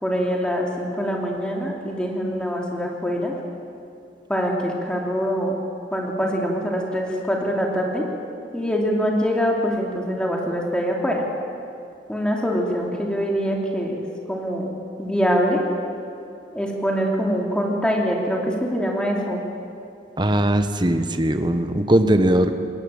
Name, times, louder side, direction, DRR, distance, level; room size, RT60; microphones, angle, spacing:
voice 1, 0.0-3.4 4.3-5.6 5.9-8.1 8.5-11.2 12.1-14.0 14.3-14.7 15.0-15.6 16.5-19.4, equal, 5° left, -1 dB, 2.9 m, -24 dB
voice 2, 20.2-22.5, right 1 dB, 25° right, 8 dB, 1.2 m, -19 dB
21.0 x 18.0 x 8.8 m, 2.6 s
head